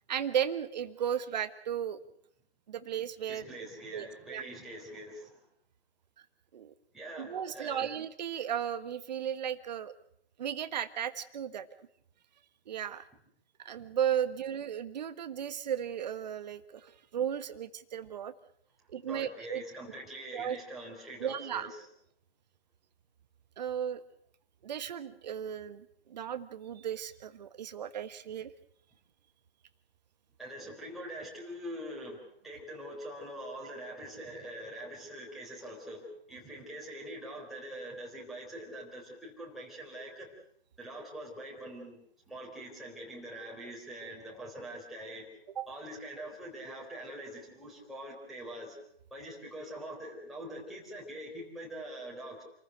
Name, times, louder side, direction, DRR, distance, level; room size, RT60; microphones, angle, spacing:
voice 1, 0.1-2.0 2.7-3.4 3.9-4.5 6.5-6.7 7.2-9.9 10.4-11.7 12.7-13.0 13.6-18.3 18.9-19.6 20.3-20.6 21.2-21.7 23.6-24.0 24.6-28.5 45.6-45.7, right 9 dB, 45° right, 13 dB, 1.4 m, -35 dB
voice 2, 3.3-5.4 6.9-7.9 19.1-21.9 30.4-40.3 40.8-42.0 42.3-45.3 45.7-48.8 49.1-52.4, right 1 dB, ahead, -5 dB, 4.0 m, -44 dB
27.5 x 15.0 x 7.8 m, 0.69 s
figure-of-eight pair, 140°, 31 cm